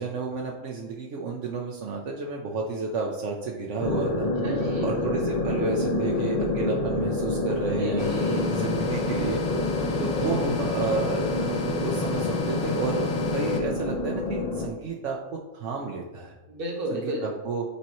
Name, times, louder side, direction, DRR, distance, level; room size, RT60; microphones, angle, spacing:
voice 1, 0.0-4.3 4.8-8.0 8.5-9.4 10.0-16.3 16.9-17.6, right 4 dB, 70° right, -1 dB, 1.0 m, -31 dB
sound 1, 3.8-14.7, left 2 dB, 40° left, 0.6 m, -28 dB
voice 2, 4.4-4.9 6.7-8.5 16.5-17.3, equal, 50° right, 1 dB, 1.3 m, -34 dB
sound 2, 8.0-13.6, left 4 dB, 85° left, 1.1 m, -31 dB
sound 3, 8.5-11.4, left 2 dB, 65° left, 1.8 m, -44 dB
8.5 x 4.2 x 3.0 m, 1.1 s
omnidirectional pair, 1.3 m